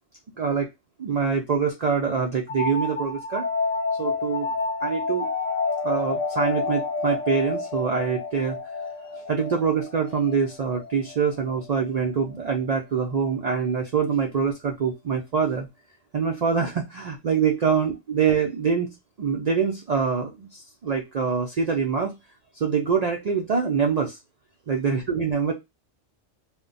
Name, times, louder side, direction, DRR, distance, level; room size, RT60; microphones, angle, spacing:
voice 1, 0.4-0.7 1.0-3.4 4.0-4.5 4.8-5.3 5.8-8.6 9.3-15.7 16.1-22.1 22.5-24.2 24.7-25.5, right 6 dB, 70° right, 2 dB, 0.3 m, -25 dB
sound 1, 2.5-11.9, left 4 dB, 85° left, 1.0 m, -29 dB
2.2 x 2.1 x 3.7 m, 0.22 s
omnidirectional pair, 1.3 m